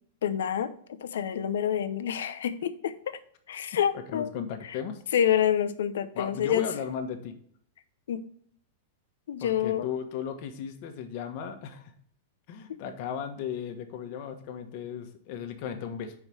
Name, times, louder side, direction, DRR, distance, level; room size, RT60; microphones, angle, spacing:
voice 1, 0.2-3.2 3.5-4.3 4.6-4.8 5.1-6.7 8.1-8.2 9.3-9.9, left 9 dB, 80° left, 12 dB, 0.7 m, -28 dB
voice 2, 4.1-5.0 6.1-7.3 9.4-11.9 12.5-16.1, left 7 dB, 55° left, 6 dB, 1.3 m, -36 dB
5.4 x 4.9 x 6.3 m, 0.62 s
hypercardioid pair, 125°, 0 cm